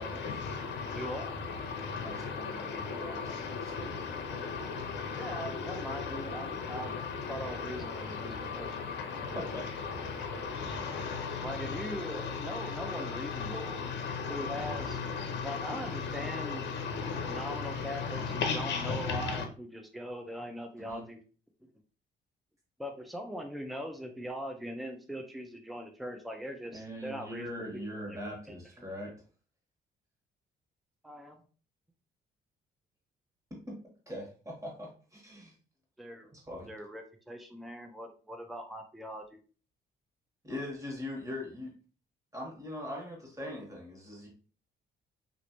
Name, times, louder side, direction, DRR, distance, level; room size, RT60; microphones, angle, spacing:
voice 1, 0.0-19.4, left 5 dB, 60° left, 0.7 m, -36 dB
voice 2, 0.9-1.3 5.2-6.9 7.3-8.9 11.4-13.7 14.3-15.0 15.4-16.6 17.3-21.2 22.8-28.6 31.0-31.4 36.0-36.3 36.7-39.4, equal, ahead, 0.5 m, -41 dB
voice 3, 2.0-3.3 3.6-4.0 9.3-9.6 20.8-21.1 26.7-29.1 33.7-33.8 34.1-35.5 36.3-36.7 40.4-41.7 42.3-44.3, left 1 dB, 15° right, 1.5 m, -41 dB
3.0 x 2.5 x 2.9 m
cardioid pair, 90°, 20 cm